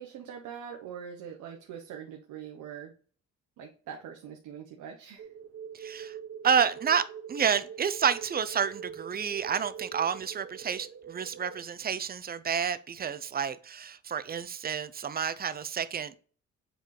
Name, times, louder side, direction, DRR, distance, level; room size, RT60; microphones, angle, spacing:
voice 1, 0.0-2.9 3.6-5.3, right 8 dB, 85° right, 0.9 m, -43 dB
sound 1, 5.2-11.6, right 8 dB, 50° right, 0.9 m, -44 dB
voice 2, 5.7-6.2 6.4-16.1, right 7 dB, 30° right, 0.5 m, -30 dB
8.0 x 4.0 x 3.2 m
cardioid pair, 90°, 30 cm